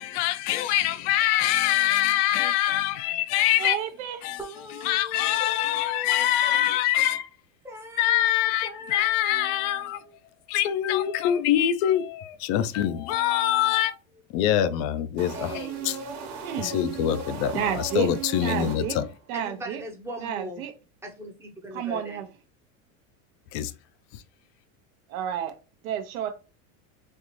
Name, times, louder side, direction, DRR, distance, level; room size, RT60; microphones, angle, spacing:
voice 1, 0.0-3.8 4.2-4.4 4.8-7.3 8.0-10.0 10.5-14.0 14.3-16.0 16.6-19.1 23.5-23.7 24.1-24.2, left 11 dB, 50° left, 0.5 m, -24 dB
voice 2, 3.6-4.2 16.4-16.8 17.5-18.1 18.4-19.0 19.3-19.8 20.2-20.7 21.7-22.3 25.1-25.5 25.8-26.3, right 9 dB, 80° right, 0.8 m, -30 dB
voice 3, 4.4-6.6 7.6-10.1 15.3-16.1 19.3-20.6 21.0-22.2, equal, 5° right, 0.7 m, -40 dB
sound 1, 15.2-19.2, right 5 dB, 40° right, 1.1 m, -37 dB
4.3 x 2.4 x 3.0 m
supercardioid pair, 140°, 42 cm